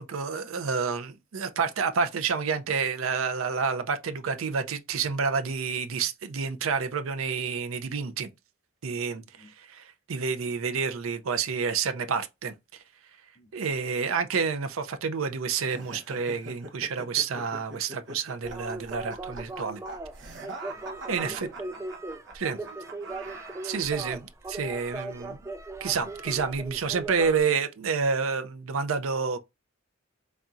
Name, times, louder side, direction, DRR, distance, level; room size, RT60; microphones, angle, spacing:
voice 1, 0.0-8.3 8.8-9.2 9.6-12.5 13.5-19.8 21.1-21.5 22.3-22.6 23.6-25.4 25.8-29.4, right 5 dB, 85° right, 0.5 m, -29 dB
voice 2, 9.1-9.5 13.3-13.7 20.7-21.8 22.5-22.7, left 1 dB, 60° left, 2.1 m, -54 dB
sound 1, 15.6-24.1, right 2 dB, 60° right, 1.0 m, -43 dB
sound 2, 18.4-27.4, right 2 dB, 15° right, 0.3 m, -39 dB
4.2 x 3.5 x 2.5 m
head